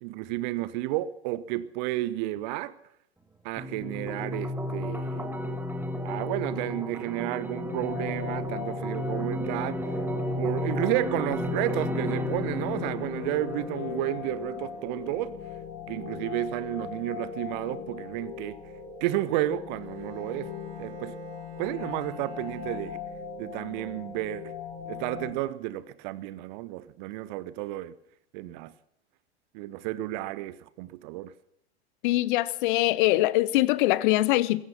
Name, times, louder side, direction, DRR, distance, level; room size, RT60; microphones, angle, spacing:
voice 1, 0.0-2.8 3.4-5.3 6.0-9.8 10.4-15.4 15.9-18.6 19.0-20.5 20.8-21.2 21.6-23.0 23.4-24.5 24.9-27.9 28.3-28.7 29.5-31.3, right 15 dB, 45° right, 0.9 m, -32 dB
sound 1, 3.6-14.6, left 1 dB, 5° right, 1.8 m, -33 dB
sound 2, 7.6-25.3, left 7 dB, 30° left, 5.4 m, -39 dB
Bowed string instrument, 19.8-23.5, right 5 dB, 60° right, 3.2 m, -52 dB
voice 2, 32.0-34.6, left 17 dB, 45° left, 1.0 m, -23 dB
16.5 x 14.5 x 5.9 m
figure-of-eight pair, 90°, 34 cm